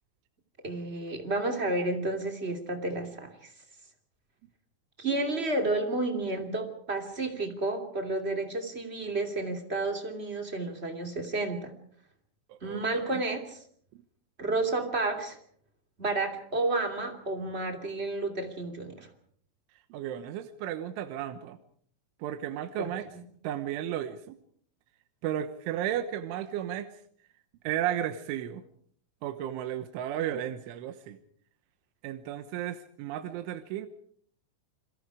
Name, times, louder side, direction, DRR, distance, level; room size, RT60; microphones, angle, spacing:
voice 1, 0.6-3.5 5.0-11.7 12.6-13.6 14.4-15.4 16.0-19.1 22.8-23.2, right 2 dB, 20° right, 4 dB, 1.9 m, -31 dB
voice 2, 12.5-13.2 19.9-21.6 22.2-23.1 23.4-24.4 25.2-26.9 27.6-28.6 29.2-31.2 32.0-33.9, right 11 dB, 80° right, 9 dB, 3.5 m, -34 dB
29.5 x 22.5 x 4.9 m, 0.62 s
omnidirectional pair, 5.5 m